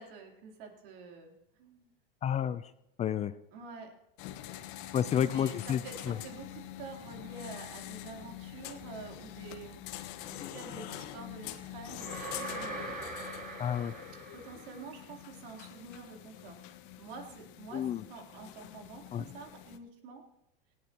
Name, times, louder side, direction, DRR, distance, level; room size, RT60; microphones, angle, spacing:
voice 1, 0.0-1.9 3.5-3.9 5.1-9.8 10.2-13.0 14.3-16.6 17.0-17.8 18.1-20.2, right 4 dB, 65° right, 1 dB, 3.6 m, -48 dB
voice 2, 2.2-2.7 3.0-3.3 4.9-5.8 6.1-6.2 10.4-10.6 13.6-13.9 17.7-18.0 19.1-19.2, left 9 dB, 25° left, 14 dB, 0.5 m, -30 dB
sound 1, 4.2-19.8, left 12 dB, 60° left, 1.5 m, -45 dB
sound 2, 12.0-15.1, right 2 dB, 30° right, 5.1 m, -42 dB
18.5 x 17.0 x 3.0 m, 0.83 s
supercardioid pair, 120°, 29 cm